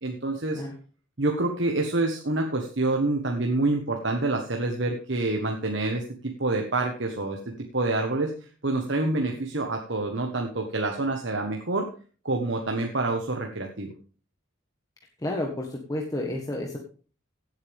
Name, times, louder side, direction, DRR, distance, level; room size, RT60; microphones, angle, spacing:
voice 1, 0.0-0.6 1.2-7.4 7.7-8.3 8.6-11.9 12.2-13.9, right 2 dB, 60° right, 2 dB, 1.4 m, -27 dB
voice 2, 15.2-16.8, left 1 dB, 15° left, 1 dB, 1.4 m, -31 dB
16.5 x 8.1 x 3.6 m, 0.38 s
head